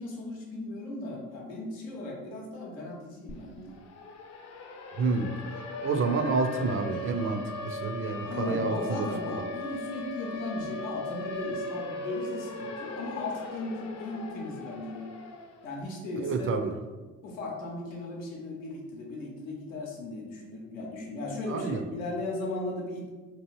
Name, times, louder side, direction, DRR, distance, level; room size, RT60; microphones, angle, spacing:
voice 1, 0.0-3.8 8.2-15.1 15.6-16.5 17.2-23.1, left 2 dB, 85° left, -2 dB, 0.7 m, -36 dB
Siren, 3.3-3.4 3.7-15.7, left 2 dB, 45° left, 0.5 m, -39 dB
voice 2, 5.0-9.1 9.3-9.4 16.2-16.7 21.5-21.9, right 3 dB, 35° right, 6 dB, 0.5 m, -29 dB
2.9 x 2.4 x 3.1 m, 1.3 s
hypercardioid pair, 50°, 39 cm